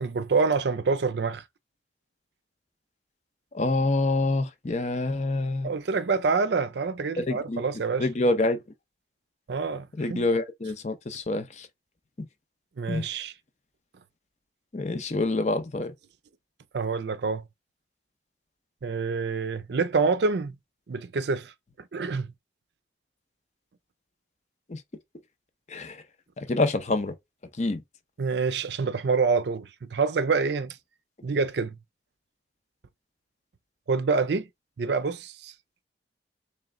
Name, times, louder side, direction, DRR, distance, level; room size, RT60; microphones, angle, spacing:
voice 1, 0.0-1.4 5.6-8.1 9.5-10.2 12.8-13.3 16.7-17.4 18.8-20.6 20.9-21.5 21.8-22.3 28.2-30.8 31.2-31.7 33.9-34.5 34.8-35.5, right 4 dB, 70° right, 0.5 m, -26 dB
voice 2, 3.5-5.7 7.2-7.6 8.0-8.6 10.0-11.7 12.9-13.1 14.7-15.9 24.7-24.8 25.7-26.0 26.4-27.1 27.6-27.8, left 2 dB, 40° left, 0.6 m, -26 dB
3.2 x 3.0 x 3.6 m
head